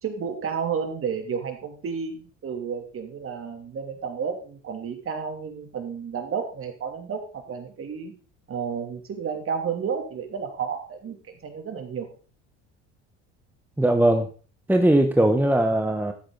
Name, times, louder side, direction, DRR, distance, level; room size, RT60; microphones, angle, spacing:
voice 1, 0.0-8.1 8.5-12.1, right 6 dB, 40° right, 5 dB, 3.0 m, -31 dB
voice 2, 13.8-14.3 14.7-16.1, right 1 dB, 5° right, 5 dB, 1.2 m, -19 dB
13.0 x 8.3 x 4.0 m, 0.38 s
supercardioid pair, 80°, 33 cm